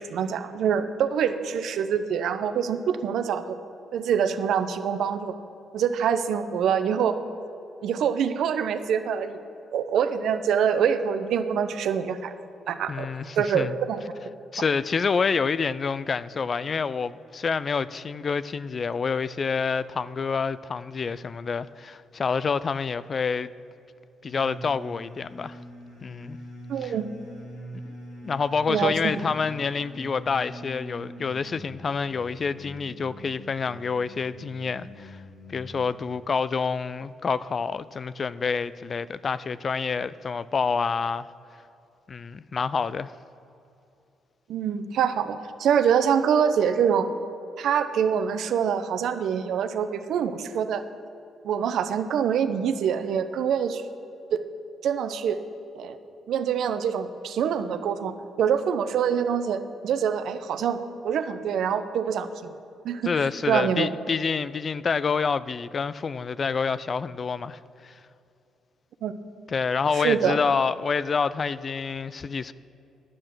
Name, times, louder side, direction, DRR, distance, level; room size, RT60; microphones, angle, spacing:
voice 1, 0.0-3.6 3.9-5.3 5.7-7.2 7.8-9.4 9.7-12.3 12.7-14.0 26.7-27.0 28.7-29.3 44.5-47.1 47.6-50.8 51.4-53.8 54.3-54.4 54.8-55.4 55.7-56.0 56.3-60.8 61.0-62.5 62.8-63.9 69.0-69.1 69.9-70.4, right 7 dB, 75° right, 0.7 m, -25 dB
voice 2, 12.9-13.8 14.5-23.5 24.2-25.6 26.0-26.4 26.8-26.9 27.8-27.9 28.2-35.2 35.5-41.3 42.1-43.1 63.1-67.9 69.5-72.5, left 5 dB, 40° left, 0.3 m, -27 dB
sound 1, 24.2-36.1, equal, 90° left, 3.0 m, -44 dB
10.0 x 8.6 x 6.1 m
cardioid pair, 90°, 0 cm